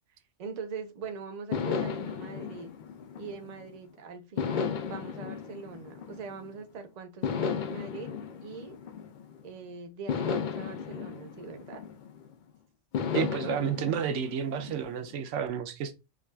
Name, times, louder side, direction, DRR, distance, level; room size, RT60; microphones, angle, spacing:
voice 1, 0.4-2.7 3.2-8.1 8.4-8.8 9.4-11.8, right 5 dB, 45° right, 0.6 m, -42 dB
sound 1, 1.5-3.8 4.4-6.6 7.2-9.5 10.1-12.3 12.9-15.2, left 6 dB, 60° left, 0.5 m, -34 dB
voice 2, 13.1-15.9, right 8 dB, 85° right, 0.9 m, -31 dB
4.9 x 2.3 x 2.3 m
omnidirectional pair, 1.2 m